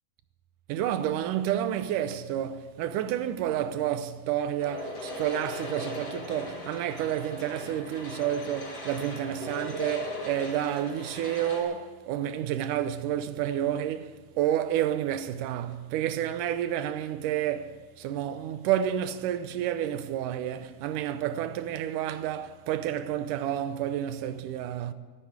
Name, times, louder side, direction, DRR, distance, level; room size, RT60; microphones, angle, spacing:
voice 1, 0.7-24.9, right 11 dB, 85° right, 2.3 m, -30 dB
sound 1, 4.6-11.6, left 1 dB, 50° left, 3.9 m, -38 dB
13.5 x 12.0 x 8.0 m
omnidirectional pair, 3.6 m